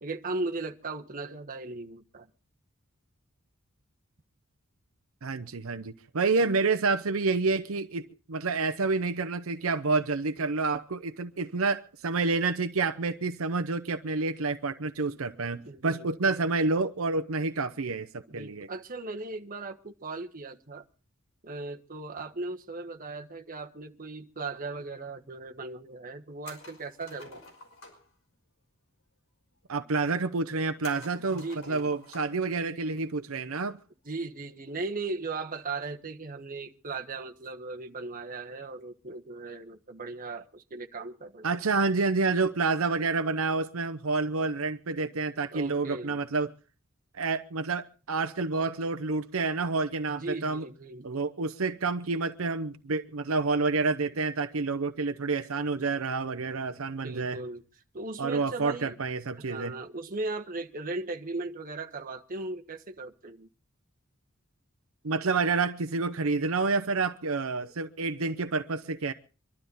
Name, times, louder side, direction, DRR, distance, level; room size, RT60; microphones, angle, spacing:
voice 1, 0.0-2.3 15.6-16.4 18.3-20.8 21.4-27.4 31.3-31.9 34.0-41.5 45.5-46.2 48.6-48.7 50.1-51.1 57.0-57.6 57.9-58.9 59.4-63.5, right 3 dB, 40° right, 1.3 m, -37 dB
voice 2, 5.2-8.0 8.3-18.7 29.7-33.8 41.4-46.5 47.1-50.7 51.0-57.4 58.2-59.7 65.0-69.1, right 3 dB, 80° right, 0.8 m, -29 dB
sound 1, 26.4-28.1 30.8-32.4 32.8-32.9 34.5-34.8, left 2 dB, 70° left, 5.7 m, -50 dB
24.5 x 12.5 x 4.0 m
head